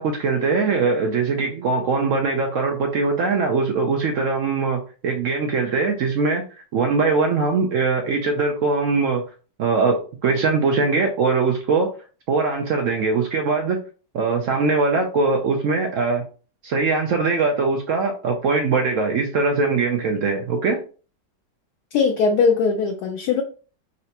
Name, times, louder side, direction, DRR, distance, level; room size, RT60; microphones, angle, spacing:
voice 1, 0.0-6.4 6.7-9.2 9.6-11.9 12.3-13.8 14.1-16.2 16.6-20.8, right 4 dB, 75° right, 3 dB, 0.7 m, -21 dB
voice 2, 21.9-23.4, left 5 dB, 75° left, 3 dB, 1.1 m, -20 dB
4.0 x 3.3 x 2.8 m, 0.38 s
omnidirectional pair, 1.9 m